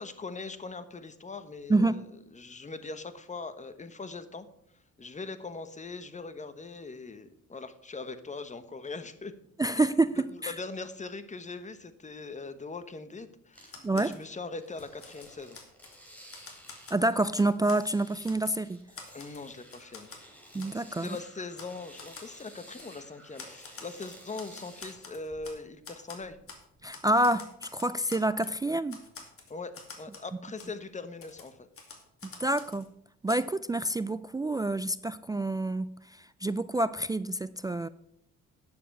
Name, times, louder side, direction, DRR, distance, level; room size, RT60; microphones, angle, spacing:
voice 1, 0.0-2.0 2.3-4.5 5.0-9.3 9.8-10.0 10.3-15.6 19.1-20.2 21.0-26.4 29.5-31.6, left 3 dB, 25° left, 11 dB, 1.1 m, -41 dB
voice 2, 1.7-2.0 9.6-10.2 10.4-10.5 13.8-14.2 16.9-18.8 20.5-21.2 26.8-29.0 32.2-32.9 33.2-37.9, right 2 dB, 15° right, 15 dB, 0.3 m, -28 dB
sound 1, 13.5-14.0 14.5-25.7 26.2-26.8, equal, 5° left, 3.3 m, -53 dB
Typewriter, 13.7-14.2 14.7-16.0 16.3-17.8 18.3-18.6 19.0-20.2 20.6-20.8 21.0-21.2 21.6-21.7 22.0-22.3 22.8-22.9 23.4-25.6 25.8-26.6 26.9-28.6 28.9-30.3 30.6-30.7 31.2-32.9 33.3-33.4, left 4 dB, 45° left, 2.4 m, -48 dB
9.8 x 6.9 x 6.5 m, 0.73 s
cardioid pair, 90°, 30 cm